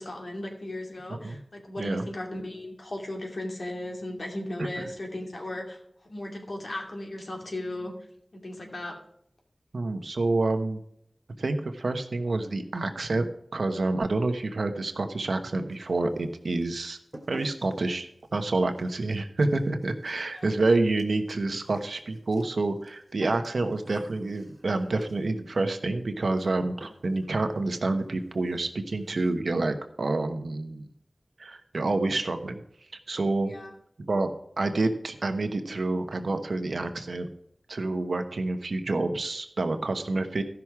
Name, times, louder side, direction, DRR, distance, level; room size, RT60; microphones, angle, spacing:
voice 1, 0.0-5.8 6.0-7.9 8.3-8.9 20.3-20.5 33.4-33.7, left 1 dB, 65° left, 1 dB, 2.5 m, -36 dB
voice 2, 4.6-4.9 9.7-10.8 11.4-13.3 13.5-17.0 17.3-30.9 31.4-32.6 33.1-33.5 34.0-34.3 34.6-37.3 37.7-40.4, right 2 dB, 80° right, 7 dB, 1.1 m, -28 dB
sound 1, 15.7-16.2 16.5-25.4 26.4-26.5 26.8-27.3 27.6-27.7 28.0-28.1 28.4-28.6 28.9-29.4, right 1 dB, 30° right, 1.9 m, -49 dB
14.0 x 6.1 x 4.8 m, 0.73 s
wide cardioid pair, 60°, 0 cm